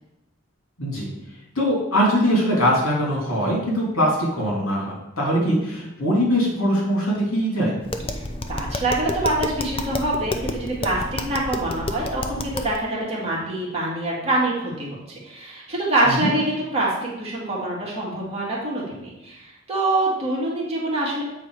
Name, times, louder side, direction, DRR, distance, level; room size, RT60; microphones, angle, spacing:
voice 1, 1.5-7.7 16.0-16.3, equal, 80° left, -3 dB, 3.0 m, -22 dB
Tap, 7.8-12.8, left 2 dB, 25° left, 0.5 m, -30 dB
voice 2, 8.1-21.2, right 2 dB, 30° right, -5 dB, 2.3 m, -25 dB
8.1 x 4.4 x 4.9 m, 0.91 s
head